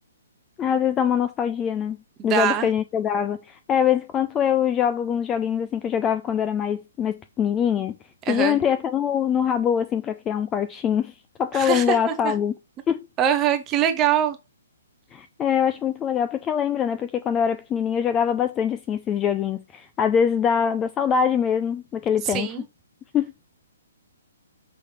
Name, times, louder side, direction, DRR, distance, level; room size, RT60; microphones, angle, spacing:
voice 1, 0.6-2.0 2.2-7.9 8.3-11.1 11.4-12.5 12.9-13.1 15.1-22.5 23.1-23.3, left 8 dB, 15° left, 0.3 m, -23 dB
voice 2, 2.2-2.7 8.3-8.6 11.5-12.3 13.2-14.4 22.2-22.6, right 9 dB, 15° right, 0.8 m, -23 dB
5.8 x 3.3 x 5.0 m
hypercardioid pair, 170°, 0 cm